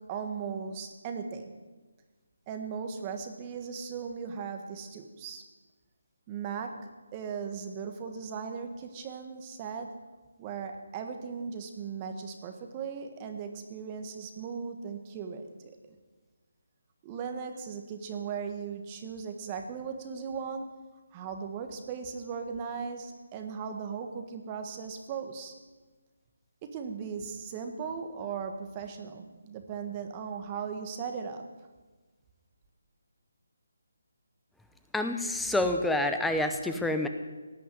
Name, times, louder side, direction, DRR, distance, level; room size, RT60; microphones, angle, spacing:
voice 1, 0.1-1.4 2.5-5.4 6.3-6.7 7.1-9.9 10.4-15.5 17.0-20.7 21.1-25.5 26.6-31.4, right 6 dB, 25° right, 6 dB, 1.5 m, -37 dB
voice 2, 34.9-37.1, left 1 dB, 5° left, 6 dB, 0.7 m, -28 dB
17.0 x 6.0 x 9.5 m, 1.3 s
figure-of-eight pair, 160°, 0 cm